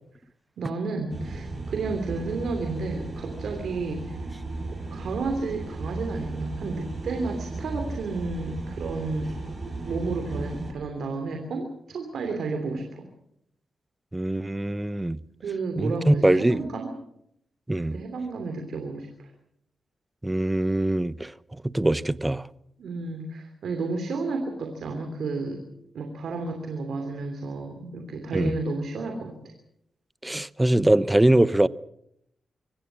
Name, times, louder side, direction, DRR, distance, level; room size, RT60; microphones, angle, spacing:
voice 1, 0.6-4.3 4.8-9.3 9.8-13.1 15.4-16.9 17.8-19.3 22.8-25.6 25.9-29.3, right 3 dB, 75° right, 3.0 m, -32 dB
sound 1, 1.1-10.7, right 3 dB, 35° right, 7.5 m, -35 dB
voice 2, 14.1-15.2 15.8-16.6 17.7-18.0 20.2-21.3 21.6-22.5 28.3-28.5 30.2-31.7, right 1 dB, 15° right, 0.8 m, -22 dB
24.5 x 16.5 x 7.5 m
cardioid pair, 70°, 0 cm